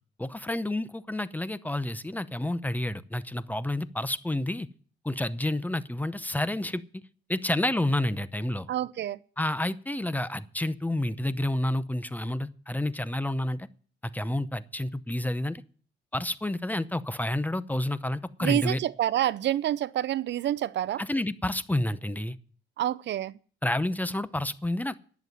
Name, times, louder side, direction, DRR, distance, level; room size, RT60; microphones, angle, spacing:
voice 1, 0.2-4.7 5.0-7.0 7.3-8.7 9.4-13.7 14.1-15.6 16.1-18.8 21.0-22.4 23.6-25.0, left 1 dB, 10° left, 0.7 m, -29 dB
voice 2, 8.7-9.2 18.4-21.0 22.8-23.4, right 12 dB, 65° right, 0.5 m, -28 dB
11.0 x 7.1 x 9.3 m
cardioid pair, 90°, 20 cm